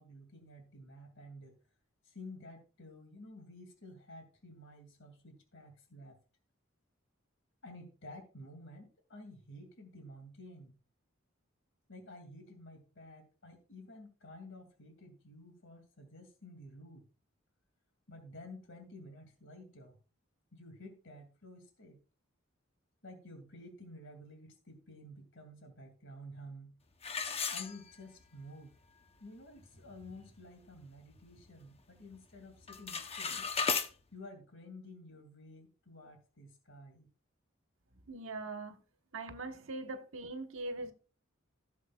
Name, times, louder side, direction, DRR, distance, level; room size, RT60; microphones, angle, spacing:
voice 1, 0.0-1.6 2.0-6.2 7.6-10.7 11.9-17.1 18.1-20.0 20.5-22.0 23.0-26.8 27.5-28.7 29.2-33.4 34.1-37.1, left 1 dB, 65° left, 2.4 m, -52 dB
sound 1, 27.0-28.3 28.7-28.8 29.4-29.5 29.9-30.2 30.6-31.7 32.0-32.4 32.6-33.9, left 5 dB, 30° left, 0.8 m, -36 dB
voice 2, 38.1-38.8 39.1-40.9, right 2 dB, 80° right, 1.4 m, -41 dB
16.0 x 7.3 x 2.3 m
head